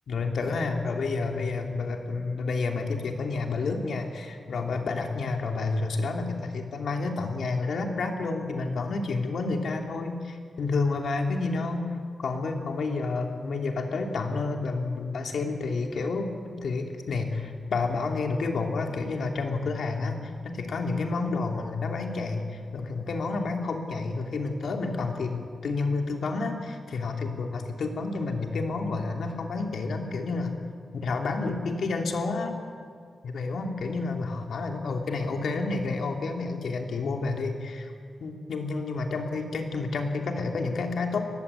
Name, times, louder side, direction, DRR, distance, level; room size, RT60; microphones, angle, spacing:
voice 1, 0.1-11.9 12.2-30.5 30.9-32.6 33.2-37.9 38.2-41.3, left 3 dB, 70° left, 3 dB, 2.8 m, -30 dB
23.0 x 19.5 x 8.4 m, 2.2 s
wide cardioid pair, 160°, 0 cm